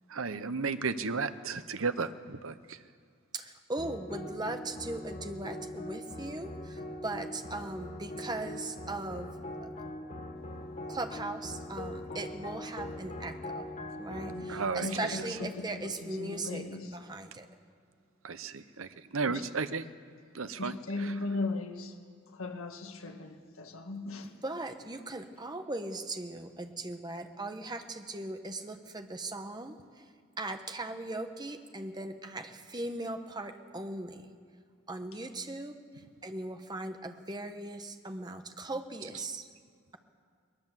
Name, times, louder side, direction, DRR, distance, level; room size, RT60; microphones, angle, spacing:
voice 1, 0.1-2.8 14.5-15.2 18.2-19.9 20.3-21.1, right 4 dB, 75° right, 0.9 m, -34 dB
voice 2, 3.3-9.3 9.6-9.7 10.9-13.6 14.0-16.6 16.9-17.5 24.4-29.8 30.4-34.3 34.9-35.8 36.2-39.5, right 2 dB, 20° right, 1.1 m, -39 dB
sound 1, 3.8-16.2, left 1 dB, 35° left, 1.4 m, -42 dB
voice 3, 14.8-17.0 19.3-19.4 20.6-22.0 22.3-24.3, left 3 dB, 80° left, 1.9 m, -38 dB
20.5 x 18.5 x 7.5 m
head